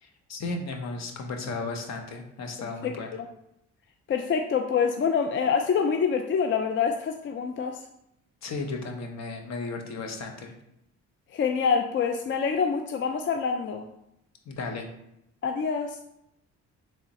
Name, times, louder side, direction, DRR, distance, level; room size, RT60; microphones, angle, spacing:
voice 1, 0.0-3.1 8.4-10.5 14.5-14.9, left 3 dB, 60° left, 4 dB, 0.9 m, -35 dB
voice 2, 2.6-3.3 4.1-7.8 11.3-13.8 15.4-16.0, left 6 dB, 40° left, 5 dB, 0.4 m, -26 dB
3.6 x 3.2 x 4.1 m, 0.82 s
cardioid pair, 90°, 30 cm